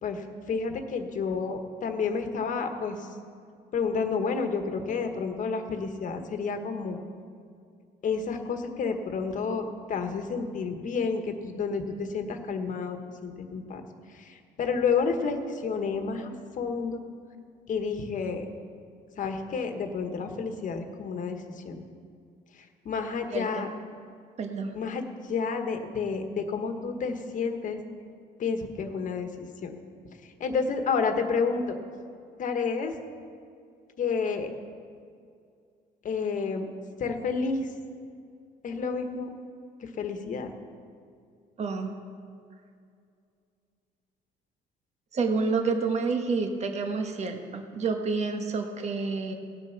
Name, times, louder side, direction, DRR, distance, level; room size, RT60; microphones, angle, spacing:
voice 1, 0.0-3.1 3.7-7.0 8.0-13.8 14.1-17.0 17.7-18.5 19.2-21.8 22.6-23.7 24.7-27.8 28.4-29.7 30.2-31.6 32.4-33.0 34.0-34.5 36.0-36.7 37.0-37.7 38.6-39.3 39.8-40.5, left 5 dB, 50° left, 6 dB, 1.4 m, -30 dB
voice 2, 23.3-23.6 24.4-24.7 41.6-41.9 45.1-49.3, right 4 dB, 40° right, 5 dB, 1.4 m, -29 dB
17.5 x 7.7 x 6.0 m, 2.3 s
cardioid pair, 110°, 17 cm